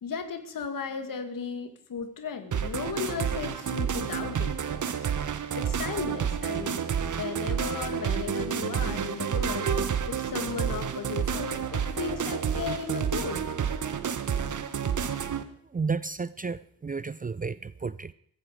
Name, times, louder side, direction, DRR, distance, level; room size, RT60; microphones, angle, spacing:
voice 1, 0.0-4.8 5.5-6.9 7.2-13.5, left 6 dB, 55° left, 8 dB, 2.3 m, -36 dB
sound 1, 2.5-15.4, right 7 dB, 50° right, 1.4 m, -30 dB
voice 2, 15.7-18.1, right 4 dB, 20° right, 17 dB, 0.6 m, -32 dB
16.0 x 15.0 x 5.0 m, 0.65 s
hypercardioid pair, 40°, 40 cm